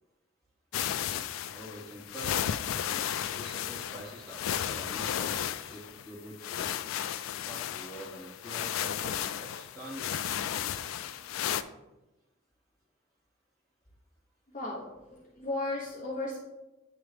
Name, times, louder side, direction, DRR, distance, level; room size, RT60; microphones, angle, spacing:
sound 1, 0.7-11.6, left 10 dB, 70° left, 0.3 m, -34 dB
voice 1, 1.5-2.5 3.3-6.7 7.4-10.2, right 1 dB, ahead, -9 dB, 2.4 m, -45 dB
voice 2, 14.5-16.4, left 2 dB, 40° left, -6 dB, 1.1 m, -35 dB
9.2 x 3.5 x 3.4 m, 1.0 s
head